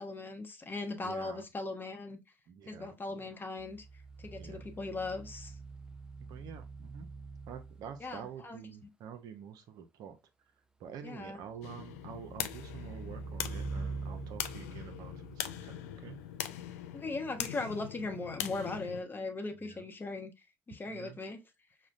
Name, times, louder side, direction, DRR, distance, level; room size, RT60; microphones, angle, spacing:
voice 1, 0.0-2.2 2.7-3.9 4.2-5.5 8.0-8.6 11.0-11.4 16.9-20.3 20.7-21.4, left 3 dB, 25° left, 0.8 m, -39 dB
voice 2, 1.0-1.4 2.5-3.3 4.2-4.7 6.2-7.1 7.5-10.2 10.8-16.2 19.6-19.8 20.9-21.2, right 7 dB, 60° right, 0.6 m, -48 dB
sound 1, 3.6-8.2 11.6-16.2 18.3-18.4, right 4 dB, 10° right, 0.4 m, -45 dB
sound 2, 11.6-19.0, left 11 dB, 80° left, 0.3 m, -41 dB
5.0 x 2.2 x 2.4 m
hypercardioid pair, 60°, 8 cm